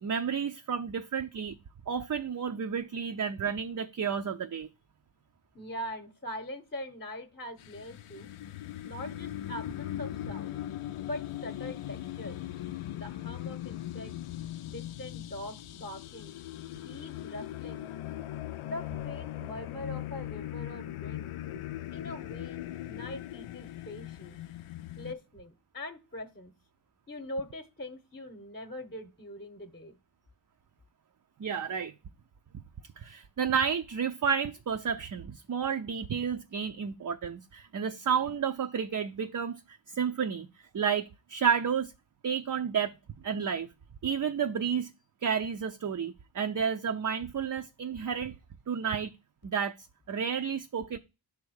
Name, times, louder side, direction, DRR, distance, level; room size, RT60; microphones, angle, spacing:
voice 1, 0.0-1.6 1.9-4.7 31.4-31.9 33.0-40.5 40.7-41.9 42.2-42.9 43.2-43.7 44.0-44.9 45.2-48.4 48.7-49.1 49.4-49.7 50.1-51.0, right 7 dB, 40° right, 0.5 m, -31 dB
voice 2, 5.5-8.3 8.8-10.6 11.0-12.4 12.9-14.2 14.6-16.3 16.8-17.9 18.6-21.3 21.9-24.4 25.0-26.5 27.1-30.0, left 1 dB, 25° left, 0.9 m, -42 dB
sound 1, 7.6-25.1, left 13 dB, 85° left, 0.6 m, -39 dB
7.3 x 3.5 x 6.3 m
wide cardioid pair, 75°, 49 cm